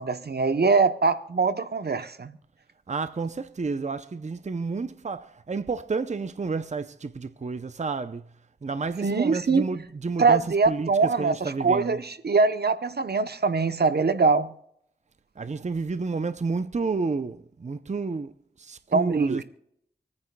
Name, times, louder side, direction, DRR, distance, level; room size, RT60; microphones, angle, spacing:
voice 1, 0.0-2.4 9.0-9.7 10.2-14.5 18.9-19.4, right 4 dB, 75° right, 0.8 m, -23 dB
voice 2, 2.9-8.2 8.6-10.4 10.7-10.9 11.2-12.0 15.4-18.3 18.6-19.4, right 4 dB, 45° right, 0.6 m, -30 dB
26.5 x 9.6 x 2.2 m
wide cardioid pair, 45°, 17 cm